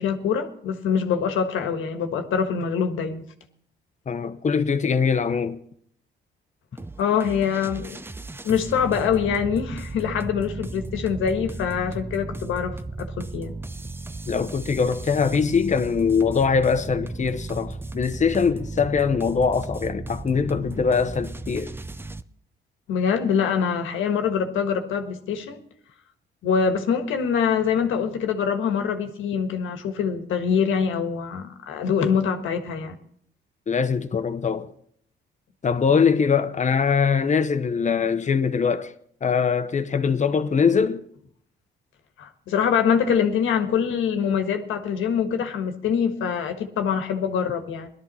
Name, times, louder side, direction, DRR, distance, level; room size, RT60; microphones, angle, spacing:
voice 1, 0.0-3.2 7.0-8.0 8.4-13.5 22.9-25.6 26.4-33.0 42.2-47.9, left 7 dB, 85° left, 1.5 m, -24 dB
voice 2, 4.1-5.6 14.3-21.7 33.7-34.7 35.6-38.9 39.2-41.0, left 6 dB, 35° left, 1.0 m, -22 dB
sound 1, 6.8-22.2, right 2 dB, 10° right, 0.5 m, -35 dB
18.5 x 12.5 x 4.3 m
cardioid pair, 90°, 20 cm